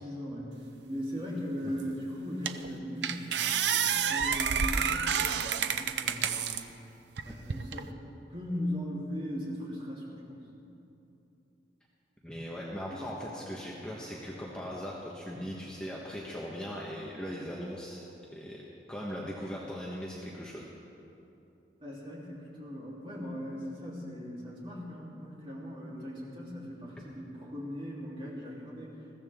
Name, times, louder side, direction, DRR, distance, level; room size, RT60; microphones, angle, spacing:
voice 1, 0.0-6.5 7.2-7.9 8.3-10.8 12.9-13.0 21.8-28.9, equal, 30° right, -6 dB, 3.3 m, -39 dB
sound 1, 1.8-1.9 2.5-2.7 3.0-6.6 7.2-7.8, right 7 dB, 85° right, 0.6 m, -29 dB
voice 2, 12.2-18.6 18.9-20.7, equal, 5° left, -4 dB, 1.2 m, -39 dB
21.0 x 15.0 x 3.6 m, 2.9 s
head